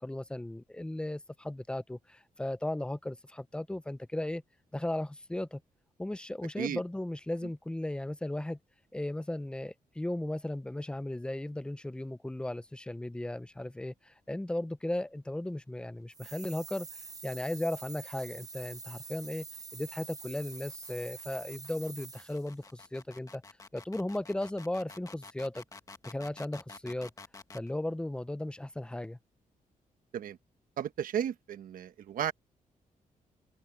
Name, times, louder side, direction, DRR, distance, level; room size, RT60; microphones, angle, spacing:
voice 1, 0.0-4.4 4.7-5.6 6.0-8.6 8.9-16.9 17.2-19.5 19.7-23.4 23.7-25.6 26.0-27.1 27.5-29.2, left 1 dB, 5° left, 0.7 m, -36 dB
sound 1, 16.1-22.5, right 4 dB, 25° right, 4.1 m, -46 dB
sound 2, 18.4-27.7, left 3 dB, 25° left, 1.8 m, -51 dB
voice 2, 30.8-32.3, right 9 dB, 85° right, 1.1 m, -34 dB
wide cardioid pair, 135°, 14 cm